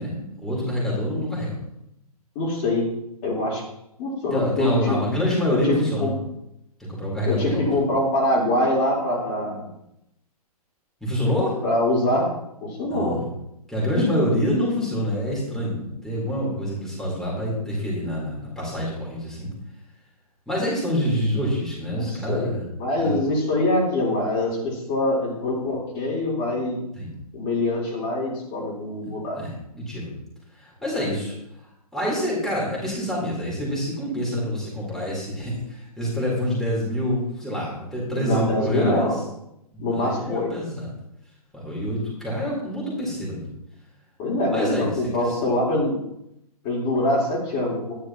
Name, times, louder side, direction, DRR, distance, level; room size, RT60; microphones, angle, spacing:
voice 1, 0.0-1.6 4.3-6.1 6.9-7.6 11.0-11.6 12.9-13.3 13.7-19.5 20.5-22.7 23.0-23.2 26.9-27.1 29.3-30.1 30.6-31.3 31.9-39.1 39.7-40.9 41.5-43.5 44.5-45.4, equal, ahead, -6 dB, 4.0 m, -26 dB
voice 2, 2.3-2.8 3.2-3.6 4.0-5.0 5.5-6.1 7.3-9.7 11.6-12.3 12.6-13.2 22.0-22.5 22.8-26.8 27.3-29.4 38.2-39.2 39.8-40.5 44.2-46.0 46.6-48.1, left 1 dB, 35° left, -4 dB, 4.1 m, -24 dB
12.5 x 10.5 x 3.0 m, 0.82 s
figure-of-eight pair, 125°, 20 cm